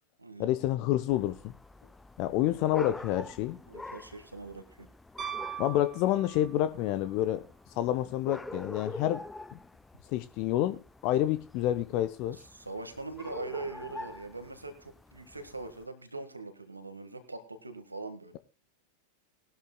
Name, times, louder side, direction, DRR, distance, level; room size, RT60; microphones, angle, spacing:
voice 1, 0.4-1.5 2.2-3.6 5.6-7.4 7.8-9.2 9.5-9.6 10.1-12.4, left 13 dB, 45° left, 11 dB, 0.7 m, -28 dB
sound 1, 1.1-15.9, left 2 dB, 5° left, 0.6 m, -46 dB
voice 2, 3.7-4.9 12.3-18.4, right 3 dB, 80° right, 8 dB, 1.7 m, -42 dB
Piano, 5.2-6.8 9.1-9.2, right 9 dB, 25° right, 0.9 m, -40 dB
19.5 x 13.0 x 2.3 m, 0.30 s
figure-of-eight pair, 90°, 0 cm